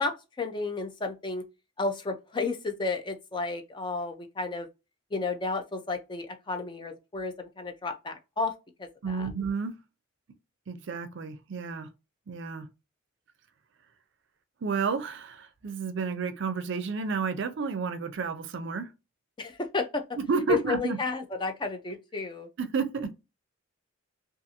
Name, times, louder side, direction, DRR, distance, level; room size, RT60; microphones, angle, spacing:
voice 1, 0.0-1.4 1.8-4.7 5.1-8.5 8.8-9.3 19.4-20.0 20.5-22.5, left 4 dB, 25° left, 0.4 m, -32 dB
voice 2, 9.0-9.8 10.7-11.9 12.3-12.7 14.6-18.9 20.2-21.0 22.6-23.1, right 5 dB, 60° right, 0.4 m, -31 dB
2.5 x 2.4 x 2.7 m
head